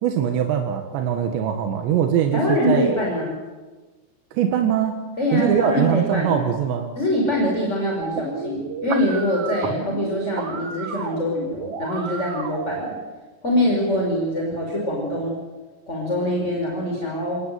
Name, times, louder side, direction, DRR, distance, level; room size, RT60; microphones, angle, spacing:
voice 1, 0.0-2.9 4.3-5.0 5.3-6.9, right 8 dB, 85° right, 4 dB, 3.8 m, -22 dB
voice 2, 2.3-3.4 5.2-6.3 7.0-12.9 13.4-15.4 15.9-17.4, equal, 15° left, -1 dB, 5.0 m, -23 dB
sound 1, 8.0-13.0, right 5 dB, 45° right, 2.2 m, -32 dB
30.0 x 19.5 x 9.2 m, 1.3 s
omnidirectional pair, 5.0 m